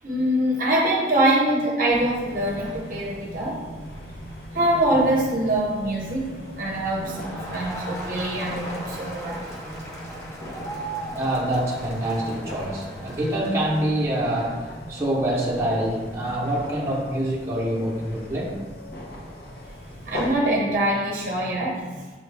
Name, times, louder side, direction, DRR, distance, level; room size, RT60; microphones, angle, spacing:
voice 1, 0.0-3.6 4.5-6.2 6.6-9.5 20.1-22.0, right 1 dB, 50° right, -3 dB, 0.7 m, -24 dB
sound 1, 1.9-20.3, equal, 60° left, 0.7 m, -39 dB
Crowd, 7.0-14.0, right 1 dB, 15° left, 0.6 m, -38 dB
voice 2, 11.2-18.6, right 1 dB, 15° right, -6 dB, 0.8 m, -26 dB
6.2 x 2.3 x 3.3 m, 1.3 s
head